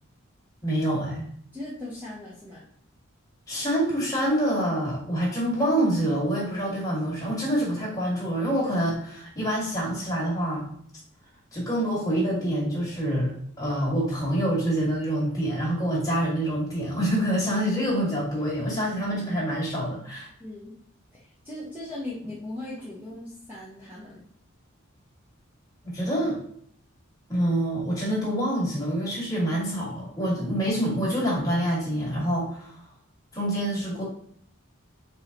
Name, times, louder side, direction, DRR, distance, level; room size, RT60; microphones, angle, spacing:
voice 1, 0.6-1.2 3.5-10.6 11.5-13.3 13.6-20.3 25.8-26.4 27.3-32.8 33.3-34.0, right 1 dB, 15° left, -5 dB, 1.9 m, -26 dB
voice 2, 1.5-2.6 20.4-20.7 21.4-24.2, left 1 dB, 10° right, -7 dB, 0.9 m, -38 dB
4.7 x 3.8 x 2.9 m, 0.63 s
head